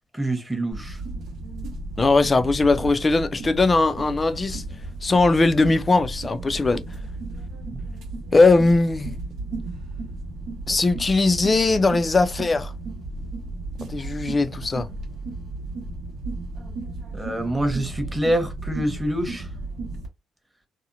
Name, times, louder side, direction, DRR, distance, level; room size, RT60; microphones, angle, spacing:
voice 1, 0.1-1.0 7.7-7.8 17.1-19.5, right 1 dB, 10° right, 0.9 m, -26 dB
sound 1, 0.7-20.1, right 2 dB, 75° right, 0.8 m, -34 dB
voice 2, 2.0-4.6 5.0-6.8 8.3-9.2 10.7-12.7 13.9-14.9, left 3 dB, 30° left, 0.4 m, -19 dB
2.8 x 2.0 x 2.5 m
cardioid pair, 90°, 0 cm